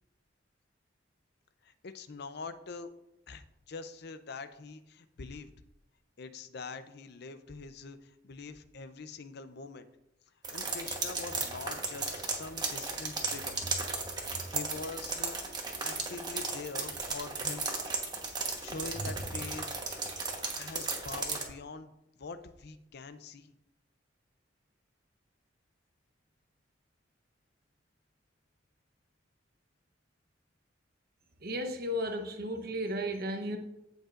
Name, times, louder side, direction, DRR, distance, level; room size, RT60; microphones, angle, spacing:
voice 1, 1.6-2.9 3.3-5.5 6.2-9.9 10.5-13.6 14.5-15.4 15.8-17.7 18.6-19.6 20.6-21.9 22.2-23.5, left 4 dB, 60° left, 11 dB, 0.6 m, -44 dB
sound 1, 10.4-21.4, right 3 dB, 20° right, 1.2 m, -35 dB
voice 2, 31.4-33.6, equal, 55° right, 5 dB, 1.0 m, -34 dB
15.5 x 5.3 x 2.5 m, 0.87 s
head